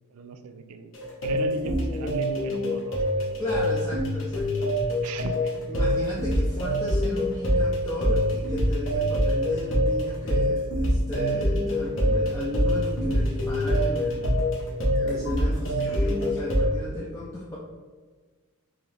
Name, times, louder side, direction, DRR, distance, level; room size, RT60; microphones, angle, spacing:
voice 1, 0.1-3.3 5.0-5.6, right 4 dB, 85° right, 8 dB, 0.3 m, -38 dB
sound 1, 0.9-16.7, equal, 60° left, 0.9 m, -25 dB
voice 2, 1.2-2.1 3.4-5.1 5.7-14.4 15.0-17.6, left 1 dB, 15° left, -6 dB, 0.4 m, -34 dB
3.8 x 2.9 x 3.2 m, 1.4 s
head